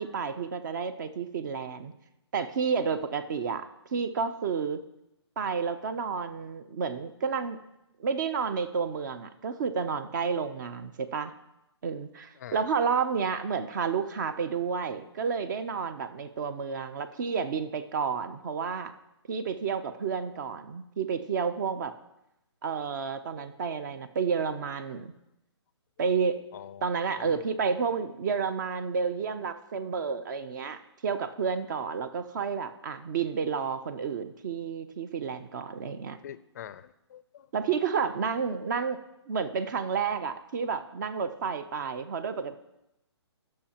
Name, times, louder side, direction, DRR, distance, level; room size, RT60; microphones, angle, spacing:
voice 1, 0.0-1.9 2.3-4.8 5.4-7.6 8.0-11.3 11.8-18.9 19.3-21.9 22.6-25.1 26.0-26.4 26.8-36.2 37.5-39.0 39.3-42.6, right 6 dB, 40° right, 12 dB, 0.6 m, -30 dB
voice 2, 12.4-12.7 26.5-26.8 27.2-27.4 36.2-37.5, left 10 dB, 40° left, 15 dB, 0.4 m, -44 dB
15.5 x 6.5 x 2.9 m, 0.90 s
hypercardioid pair, 150°, 15 cm